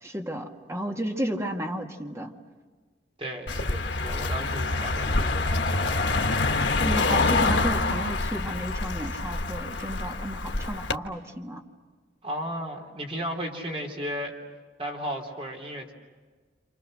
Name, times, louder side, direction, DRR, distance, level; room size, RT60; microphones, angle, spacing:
voice 1, 0.0-2.3 6.8-11.6, right 1 dB, 15° right, 2 dB, 2.1 m, -32 dB
voice 2, 3.2-6.0 12.2-14.3 14.8-15.9, equal, 35° right, 1 dB, 3.6 m, -35 dB
Car passing by, 3.5-11.0, left 3 dB, 90° left, 1.4 m, -26 dB
28.5 x 28.0 x 6.5 m, 1.4 s
head